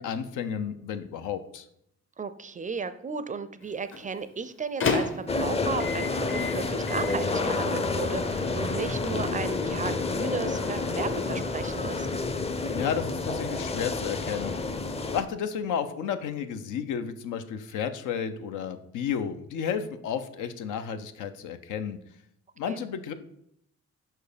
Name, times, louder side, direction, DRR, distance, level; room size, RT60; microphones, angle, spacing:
voice 1, 0.0-1.7 12.7-14.6 15.1-22.0 22.6-23.1, left 7 dB, 85° left, 9 dB, 0.7 m, -32 dB
voice 2, 2.2-12.1 22.7-22.8, right 5 dB, 25° right, 13 dB, 0.4 m, -35 dB
Microwave oven, 3.6-11.8, left 4 dB, 40° left, 1.0 m, -35 dB
sound 1, 5.3-15.2, left 3 dB, 20° left, 0.5 m, -29 dB
5.3 x 4.6 x 5.0 m, 0.75 s
cardioid pair, 90°, 30 cm